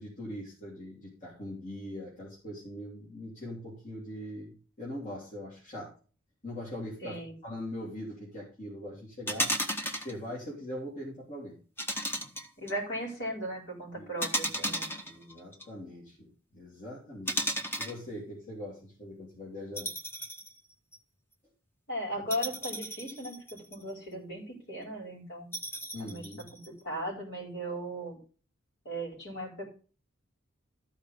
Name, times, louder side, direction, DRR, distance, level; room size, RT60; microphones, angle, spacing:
voice 1, 0.0-5.9 6.4-9.5 10.0-11.6 13.9-14.2 14.7-14.8 15.0-19.9 25.9-26.5, left 1 dB, 35° left, -5 dB, 3.1 m, -42 dB
voice 2, 7.0-7.3 12.6-14.9 21.9-25.6 26.0-26.3 26.7-28.2 28.8-29.7, equal, 55° left, -1 dB, 4.6 m, -37 dB
sound 1, 9.3-10.1 11.8-12.7 14.2-15.6 17.3-18.0 19.8-20.5 20.9-21.0 22.3-23.9 25.5-26.7, equal, 10° left, 1.0 m, -34 dB
13.5 x 4.8 x 5.2 m, 0.38 s
head